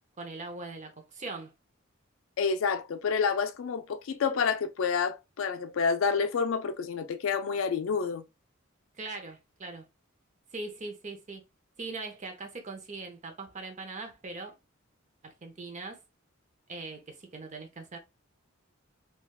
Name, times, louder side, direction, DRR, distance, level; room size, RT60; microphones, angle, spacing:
voice 1, 0.2-1.5 9.0-9.9 10.5-11.4 11.8-14.5 15.2-16.0 16.7-18.0, right 3 dB, 35° right, 0.7 m, -41 dB
voice 2, 2.4-8.2, left 5 dB, 70° left, 0.4 m, -29 dB
3.3 x 2.3 x 2.2 m
head